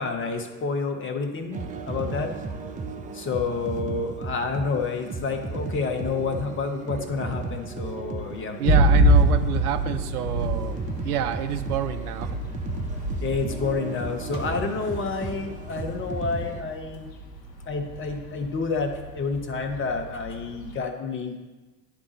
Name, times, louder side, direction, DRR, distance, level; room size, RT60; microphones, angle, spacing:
voice 1, 0.0-2.3 3.1-8.6 13.2-17.1 17.7-21.4, left 4 dB, 25° left, 5 dB, 1.0 m, -29 dB
sound 1, 1.5-16.6, right 3 dB, 15° right, 0.6 m, -35 dB
sound 2, 8.6-20.8, right 1 dB, 75° left, 0.9 m, -26 dB
voice 2, 8.6-12.4, right 9 dB, 65° right, 9 dB, 0.7 m, -28 dB
11.0 x 3.6 x 4.0 m, 1.2 s
figure-of-eight pair, 70°, 49 cm